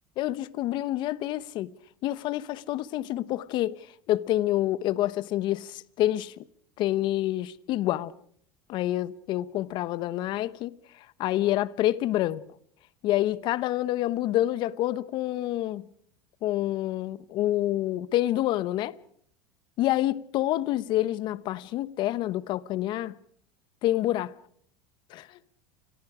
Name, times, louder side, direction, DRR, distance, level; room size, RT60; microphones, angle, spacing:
voice 1, 0.2-1.7 2.0-6.4 6.8-8.1 8.7-12.5 13.0-15.9 16.4-19.0 19.8-23.2 23.8-24.3 25.1-25.4, left 14 dB, 55° left, 1.0 m, -28 dB
29.0 x 22.0 x 5.0 m
supercardioid pair, 100°, 10 cm